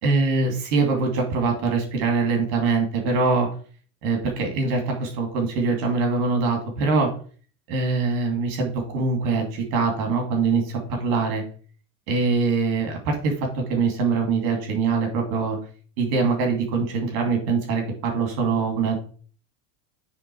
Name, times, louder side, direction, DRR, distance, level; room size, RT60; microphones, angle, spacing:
voice 1, 0.0-3.5 4.0-7.1 7.7-11.4 12.1-15.6 16.0-19.0, right 4 dB, 75° right, 3 dB, 2.7 m, -23 dB
9.1 x 3.9 x 4.7 m, 0.43 s
supercardioid pair, 100°, 44 cm